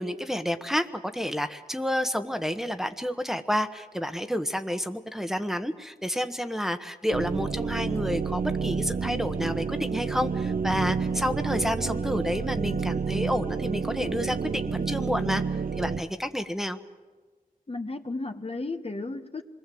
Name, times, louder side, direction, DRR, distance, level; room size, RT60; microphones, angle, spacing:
voice 1, 0.0-16.8, equal, ahead, 1.3 m, -30 dB
sound 1, 7.1-16.0, right 5 dB, 70° right, 0.8 m, -29 dB
voice 2, 17.7-19.4, left 3 dB, 40° left, 1.3 m, -34 dB
26.5 x 21.0 x 7.8 m
cardioid pair, 45°, 15 cm